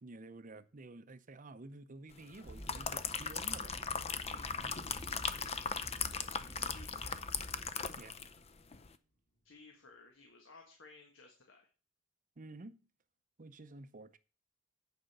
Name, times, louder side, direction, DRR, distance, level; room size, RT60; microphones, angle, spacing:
voice 1, 0.0-3.7 4.6-4.7 7.9-8.1 12.4-12.8 13.4-14.2, right 2 dB, 40° right, 0.7 m, -51 dB
sound 1, 2.3-8.4 8.7-8.9, left 6 dB, 30° left, 0.6 m, -38 dB
sound 2, 2.4-7.7, equal, 5° right, 0.9 m, -50 dB
voice 2, 4.2-5.6 6.1-7.2 9.4-11.7, left 3 dB, 70° left, 1.5 m, -58 dB
sound 3, 4.4-8.9 9.3-9.5, equal, 55° left, 3.4 m, -61 dB
8.8 x 5.1 x 6.6 m
head